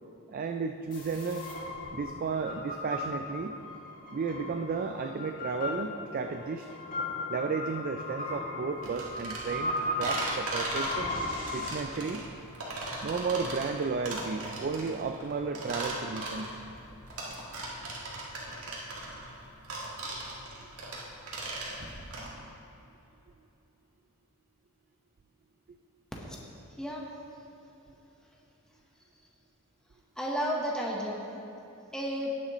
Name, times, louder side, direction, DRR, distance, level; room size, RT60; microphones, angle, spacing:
voice 1, 0.3-1.5 1.9-3.6 4.1-6.7 7.3-11.1 11.5-12.3 13.0-16.6, right 4 dB, 40° right, 6 dB, 0.4 m, -33 dB
sound 1, 0.9-11.7, left 2 dB, 40° left, 2.2 m, -37 dB
sound 2, 8.8-22.3, right 2 dB, 70° right, 1.9 m, -38 dB
voice 2, 26.8-27.1 30.2-31.2 31.9-32.4, equal, 5° left, -3 dB, 1.1 m, -32 dB
18.0 x 6.6 x 3.0 m, 3.0 s
head